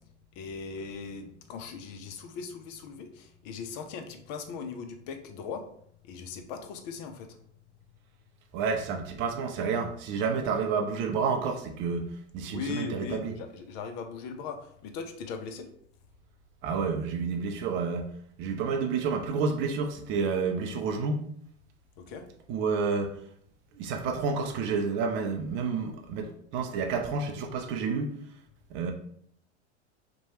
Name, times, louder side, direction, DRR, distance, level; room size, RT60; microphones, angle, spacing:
voice 1, 0.3-5.6 6.0-7.3 12.5-15.7 22.0-22.2, left 5 dB, 40° left, 0.5 m, -39 dB
voice 2, 8.5-12.1 12.3-13.3 16.6-18.1 18.4-21.3 22.5-23.2 23.7-28.1 28.7-28.9, right 5 dB, 35° right, 0.5 m, -29 dB
2.9 x 2.2 x 2.8 m
hypercardioid pair, 95°, 35 cm